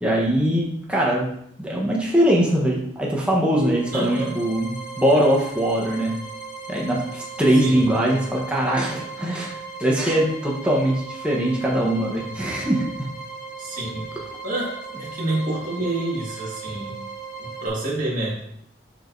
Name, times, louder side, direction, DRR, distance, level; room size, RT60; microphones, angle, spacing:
voice 1, 0.0-1.3 1.6-6.1 6.7-9.5 9.8-13.1, right 1 dB, 5° right, -4 dB, 1.0 m, -21 dB
sound 1, 3.5-17.7, right 4 dB, 45° left, 0.8 m, -37 dB
voice 2, 3.9-4.4 7.6-8.0 13.6-14.0 14.4-17.0 17.4-18.4, right 1 dB, 45° right, -5 dB, 1.9 m, -28 dB
7.6 x 4.7 x 2.6 m, 0.72 s
head